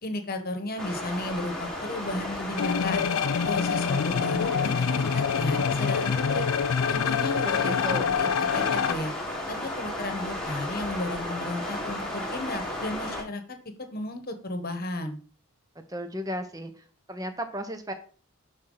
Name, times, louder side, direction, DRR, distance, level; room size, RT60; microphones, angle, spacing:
voice 1, 0.0-3.1 3.4-6.5 6.9-9.1 9.5-13.4 13.9-15.2, left 1 dB, 40° left, 6 dB, 1.2 m, -34 dB
sound 1, 0.8-13.2, left 1 dB, 5° left, 1.7 m, -34 dB
sound 2, 2.6-8.9, left 7 dB, 70° left, 0.4 m, -26 dB
voice 2, 7.4-8.1 15.9-16.7 17.1-17.9, equal, 15° right, 7 dB, 0.9 m, -34 dB
11.5 x 4.4 x 3.9 m, 0.41 s
head